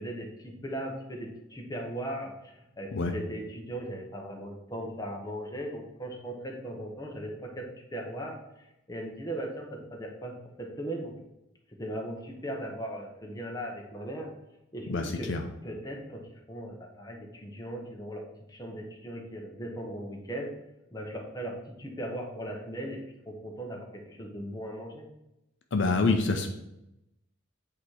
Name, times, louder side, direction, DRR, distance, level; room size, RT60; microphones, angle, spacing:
voice 1, 0.0-11.2 11.8-14.3 14.7-15.3 15.6-20.5 20.9-25.1, right 1 dB, 20° left, 0 dB, 1.0 m, -38 dB
voice 2, 14.9-15.4 25.7-26.5, left 3 dB, 60° left, 5 dB, 0.6 m, -26 dB
8.4 x 2.9 x 4.8 m, 0.87 s
head